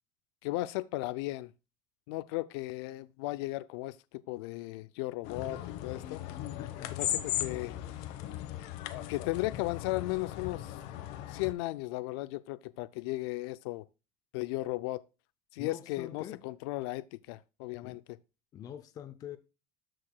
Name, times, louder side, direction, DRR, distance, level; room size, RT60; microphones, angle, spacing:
voice 1, 0.4-1.5 2.1-6.2 6.9-7.8 9.1-10.8 11.3-13.8 14.3-15.0 15.5-18.0, left 19 dB, 80° left, 0.4 m, -36 dB
sound 1, 5.2-11.5, left 13 dB, 60° left, 1.0 m, -38 dB
voice 2, 6.6-7.0 15.6-16.4 17.8-18.0 18.5-19.4, left 10 dB, 30° left, 0.5 m, -45 dB
13.5 x 4.7 x 2.2 m
cardioid pair, 165°, 13 cm